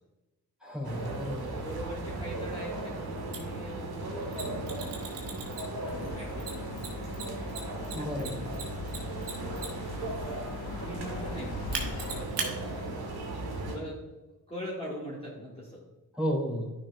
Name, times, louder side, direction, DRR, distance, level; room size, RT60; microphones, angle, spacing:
voice 1, 0.6-1.5 7.9-8.5 16.1-16.7, equal, ahead, -3 dB, 2.4 m, -32 dB
sound 1, 0.8-13.8, right 2 dB, 60° right, 1.6 m, -37 dB
voice 2, 1.3-5.2 5.9-7.4 7.7-9.0 10.8-13.1 13.6-14.1 14.5-15.8, equal, 15° left, -6 dB, 1.9 m, -43 dB
Mechanisms, 3.3-3.4 4.3-5.9 6.4-9.9 11.7-12.5, right 6 dB, 90° right, 1.3 m, -37 dB
sound 2, 5.8-12.3, left 6 dB, 85° left, 0.7 m, -43 dB
9.7 x 6.1 x 2.4 m, 1.1 s
cardioid pair, 60°, 42 cm